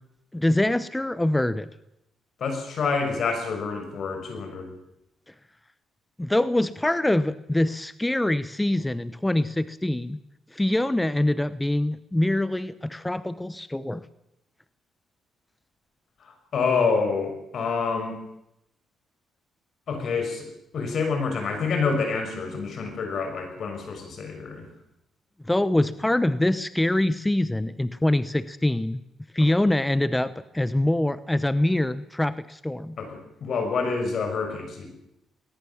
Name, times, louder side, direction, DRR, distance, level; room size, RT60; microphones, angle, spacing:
voice 1, 0.3-1.7 6.2-10.2 10.5-14.1 25.5-29.0 29.3-33.0, left 1 dB, 10° left, 14 dB, 0.9 m, -24 dB
voice 2, 2.4-4.7 16.2-18.2 19.9-20.5 20.7-24.7 29.4-29.5 33.0-34.9, left 4 dB, 60° left, 5 dB, 6.3 m, -27 dB
20.5 x 19.0 x 7.2 m, 0.83 s
cardioid pair, 90°, 0 cm